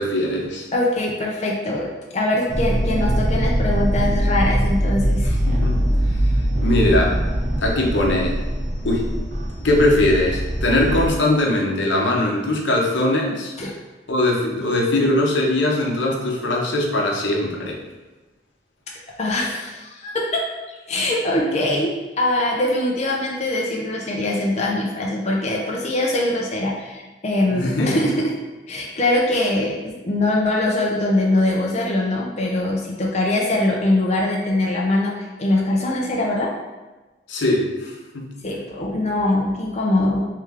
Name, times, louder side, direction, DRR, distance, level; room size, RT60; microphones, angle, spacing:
voice 1, 0.0-0.7 5.3-5.8 6.1-7.2 7.6-8.4 8.8-9.1 9.6-13.5 14.1-17.8 27.5-28.0 37.3-38.3, left 1 dB, 90° left, -1 dB, 0.8 m, -21 dB
voice 2, 0.7-5.3 13.6-13.7 19.2-20.4 20.9-28.3 28.7-36.5 38.4-40.3, left 1 dB, 40° left, -2 dB, 0.5 m, -22 dB
sound 1, 2.5-11.1, equal, 45° right, 0.7 m, -22 dB
3.3 x 3.2 x 3.5 m, 1.2 s
head